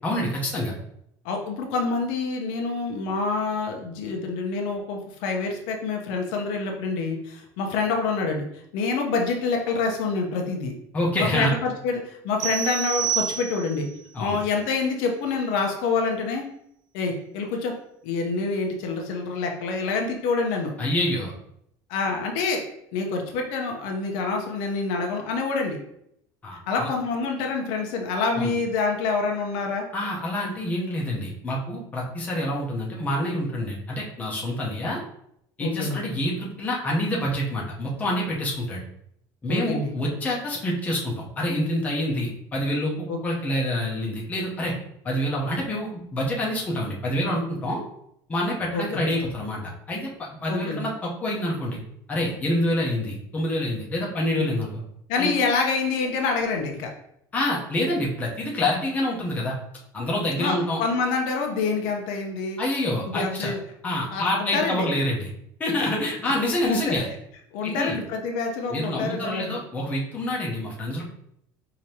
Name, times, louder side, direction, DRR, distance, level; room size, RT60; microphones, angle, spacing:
voice 1, 0.0-0.7 10.9-11.5 14.1-14.4 20.8-21.3 26.4-26.9 28.4-28.5 29.9-35.0 35.6-38.8 39.4-44.7 45.0-47.8 48.3-51.8 52.1-54.8 55.2-55.3 57.3-59.5 59.9-60.8 62.6-63.5 63.8-65.3 65.6-67.1 67.6-68.0 68.7-71.0, left 1 dB, 15° left, -3 dB, 0.9 m, -27 dB
voice 2, 1.2-8.4 8.7-10.7 11.2-13.9 14.2-16.4 16.9-17.7 18.0-20.7 21.9-22.6 22.9-25.8 26.7-29.9 35.6-36.0 39.5-39.9 43.1-43.2 48.7-49.0 50.5-50.8 54.4-54.5 55.1-56.9 60.4-62.6 63.1-63.6 64.1-64.8 66.7-66.9 67.5-69.6, left 4 dB, 70° left, 2 dB, 0.8 m, -27 dB
sound 1, 12.4-13.9, right 9 dB, 75° right, 0.5 m, -28 dB
5.0 x 2.9 x 2.9 m, 0.73 s
cardioid pair, 165°, 9 cm